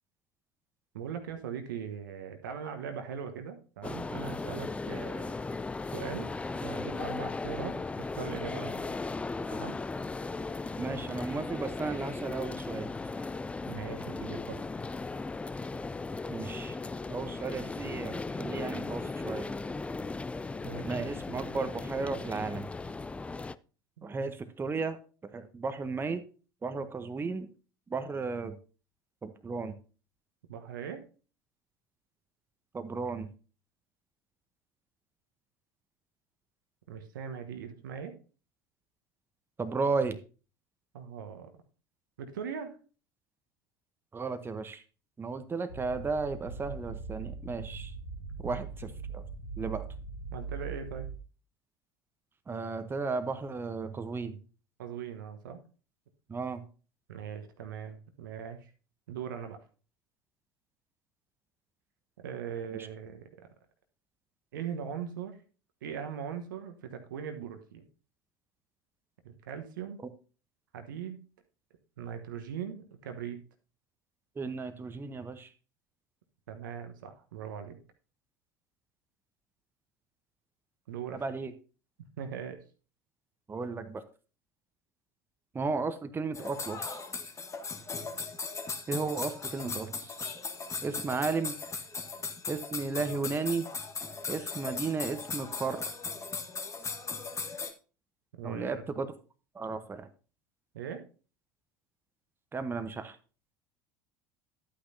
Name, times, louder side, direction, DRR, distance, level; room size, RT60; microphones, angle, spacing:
voice 1, 0.9-5.3 5.9-6.3 6.6-8.9 9.5-9.8 13.7-14.6 20.6-20.9 24.0-24.1 30.5-31.0 36.9-38.1 40.9-41.5 42.2-42.8 50.3-51.1 54.8-55.6 57.1-58.7 59.1-59.6 62.2-63.5 64.5-65.4 65.8-67.9 69.2-70.0 70.7-71.2 72.0-73.4 76.5-77.8 80.9-81.2 82.2-82.6 98.3-98.8 100.7-101.0, right 7 dB, 75° right, 7 dB, 1.2 m, -40 dB
sound 1, 3.8-23.5, left 3 dB, 10° left, 0.3 m, -37 dB
voice 2, 10.8-12.9 16.3-16.8 17.1-19.5 20.8-22.7 24.0-25.0 25.3-26.2 26.6-27.5 27.9-28.5 29.2-29.7 32.7-33.3 39.6-40.2 44.1-44.8 45.2-47.9 48.4-48.6 49.1-49.2 49.6-49.8 52.5-54.4 56.3-56.6 74.4-75.5 81.1-81.5 83.5-84.0 85.5-87.1 88.9-90.2 90.8-91.6 92.5-93.7 94.3-95.9 98.4-99.1 99.5-100.1 102.5-103.2, right 4 dB, 20° right, 9 dB, 1.0 m, -34 dB
sound 2, 45.7-51.2, right 4 dB, 70° left, 3.2 m, -41 dB
sound 3, 86.3-97.7, left 4 dB, 25° left, 1.4 m, -38 dB
11.5 x 8.7 x 2.7 m, 0.35 s
figure-of-eight pair, 70°, 11 cm